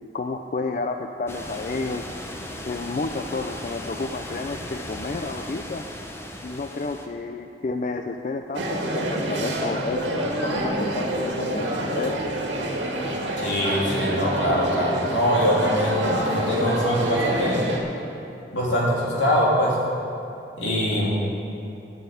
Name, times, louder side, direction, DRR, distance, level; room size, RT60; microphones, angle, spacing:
voice 1, 0.1-2.1 2.6-5.9 6.4-12.2, left 3 dB, 40° left, 5 dB, 0.4 m, -31 dB
sound 1, 1.3-7.1, left 1 dB, 15° left, 0.7 m, -37 dB
sound 2, 8.5-17.8, right 1 dB, 85° right, 1.7 m, -27 dB
voice 2, 13.4-17.5 18.5-19.8 20.6-21.1, equal, 85° left, -5 dB, 3.0 m, -23 dB
9.3 x 7.6 x 8.4 m, 2.8 s
head